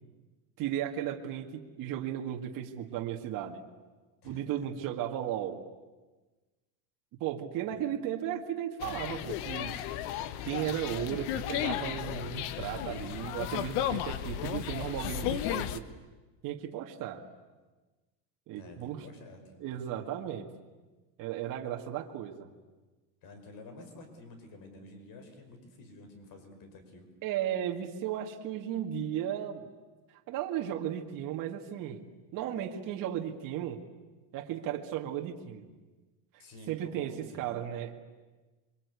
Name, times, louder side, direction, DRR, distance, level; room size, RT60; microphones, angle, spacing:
voice 1, 0.6-3.6 4.2-5.6 7.2-9.8 10.4-15.9 16.4-17.2 18.5-19.1 19.6-20.5 21.2-22.5 27.2-29.7 30.3-33.8 34.3-35.7 36.3-37.9, right 10 dB, 40° right, 2 dB, 2.1 m, -35 dB
voice 2, 4.2-4.7 7.7-8.1 18.6-20.0 23.2-27.1 36.4-37.6, left 2 dB, 45° left, 7 dB, 5.5 m, -50 dB
sound 1, 8.8-15.8, left 11 dB, 70° left, 1.4 m, -34 dB
28.0 x 23.5 x 8.4 m, 1.2 s
cardioid pair, 160°, 47 cm